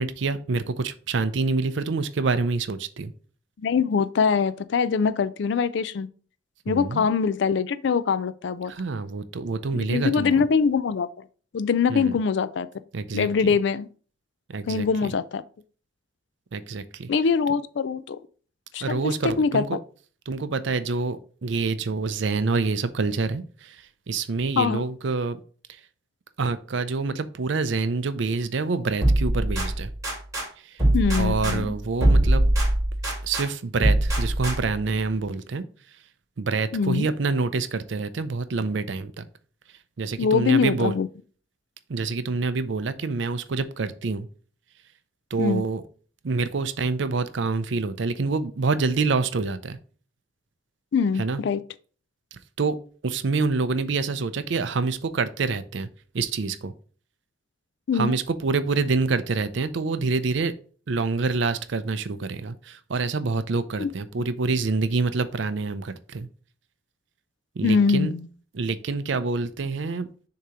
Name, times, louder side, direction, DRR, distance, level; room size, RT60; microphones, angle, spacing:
voice 1, 0.0-3.1 6.7-7.0 8.7-10.5 11.9-12.1 12.9-13.3 14.5-15.1 16.5-17.1 18.8-19.8 20.3-23.8 24.1-25.4 26.4-29.9 31.2-32.5 33.2-35.6 36.4-39.2 40.0-40.9 41.9-44.3 45.3-45.8 46.2-49.8 51.2-51.4 52.3-52.8 53.0-55.9 56.1-56.7 57.9-60.5 60.9-66.3 67.6-68.1 68.5-70.1, right 4 dB, 65° right, 0.5 m, -26 dB
voice 2, 3.6-6.1 6.7-8.7 9.7-11.1 11.5-12.7 13.1-13.9 14.7-15.4 17.1-18.2 18.7-19.6 24.6-24.8 30.9-31.7 36.7-37.1 40.2-41.1 45.4-45.6 50.9-51.6 57.9-58.1 63.8-63.9 67.6-68.3, left 5 dB, 60° left, 0.4 m, -23 dB
sound 1, 29.0-30.5 30.8-33.5 33.8-34.8, right 1 dB, 15° right, 2.7 m, -22 dB
6.6 x 2.9 x 4.9 m
head